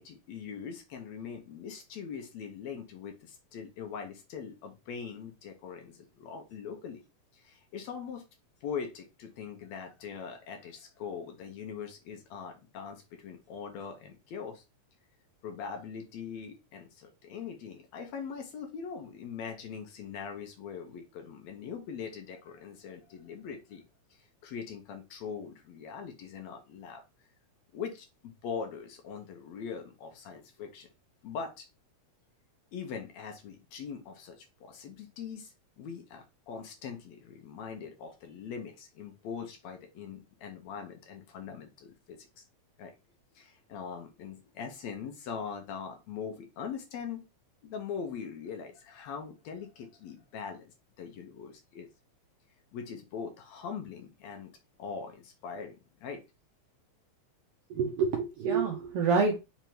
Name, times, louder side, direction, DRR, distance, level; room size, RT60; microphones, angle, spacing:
voice 1, 0.0-7.0 7.3-8.2 8.6-14.6 15.4-23.9 24.2-27.0 27.7-30.9 31.2-31.7 32.7-42.5 42.8-42.9 43.4-47.2 47.6-51.9 52.7-54.5 54.8-56.2, left 6 dB, 70° left, 5 dB, 1.9 m, -42 dB
voice 2, 57.7-59.4, right 5 dB, 80° right, 1 dB, 1.4 m, -27 dB
5.1 x 3.5 x 2.9 m, 0.26 s
omnidirectional pair, 3.5 m